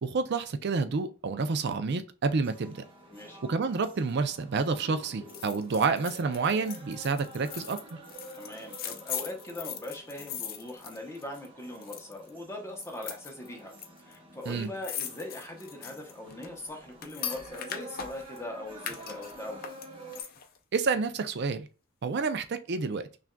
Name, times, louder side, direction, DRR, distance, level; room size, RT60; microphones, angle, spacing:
voice 1, 0.0-2.8 3.5-8.0 14.5-14.7 20.7-21.7 22.0-23.0, right 4 dB, 55° right, 0.4 m, -29 dB
sound 1, 2.4-20.2, right 1 dB, 25° right, 0.9 m, -49 dB
sound 2, 5.3-11.5 11.7-12.3 12.8-13.9 14.1-14.2 14.4-18.4 18.8-20.6 20.9-21.0, left 9 dB, 45° left, 0.5 m, -40 dB
voice 2, 8.4-19.7, left 1 dB, 15° left, 0.8 m, -41 dB
5.8 x 2.5 x 2.2 m
head